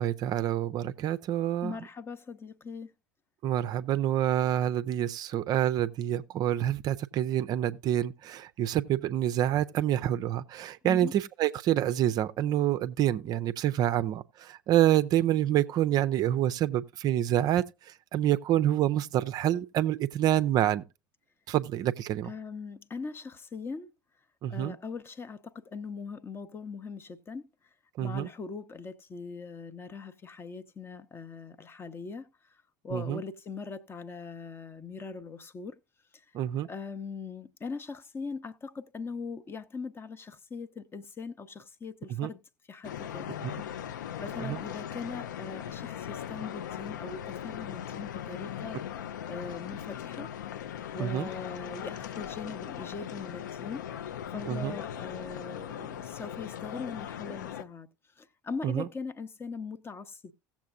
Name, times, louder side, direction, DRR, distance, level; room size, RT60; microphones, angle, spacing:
voice 1, 0.0-1.7 3.4-17.6 18.1-20.8 21.5-22.3 24.4-24.7 28.0-28.3 32.9-33.2 36.3-36.7 42.2-42.3 44.4-44.6 51.0-51.3 54.5-54.7 58.6-58.8, right 12 dB, 40° right, 0.4 m, -27 dB
voice 2, 1.6-2.9 10.8-11.1 22.2-23.9 24.5-27.5 28.0-35.8 36.1-36.2 36.6-42.4 42.7-43.3 44.2-48.8 49.3-50.3 50.9-53.9 54.3-57.9 58.2-60.3, left 4 dB, 20° left, 0.7 m, -40 dB
sound 1, 42.8-57.6, left 10 dB, 65° left, 0.5 m, -39 dB
17.0 x 7.2 x 2.4 m
figure-of-eight pair, 70°, 11 cm